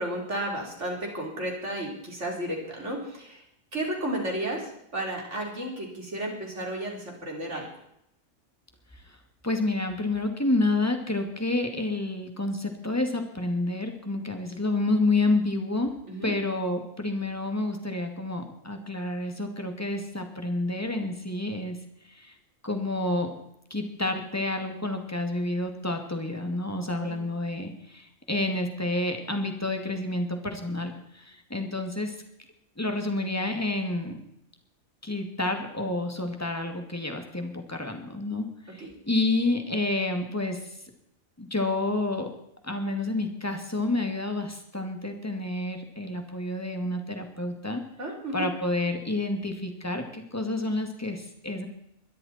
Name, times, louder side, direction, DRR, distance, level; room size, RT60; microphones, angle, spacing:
voice 1, 0.0-3.4 3.7-7.7 16.1-16.3 27.0-27.2 38.8-39.0 48.0-48.5, right 1 dB, 55° right, 0 dB, 4.5 m, -33 dB
voice 2, 9.4-15.9 16.2-21.8 22.1-22.3 22.6-23.3 23.7-32.2 32.8-34.2 35.0-40.6 41.4-42.3 42.6-47.8 48.3-51.7, left 2 dB, 10° left, 4 dB, 2.3 m, -29 dB
22.0 x 13.0 x 4.4 m, 0.77 s
omnidirectional pair, 1.5 m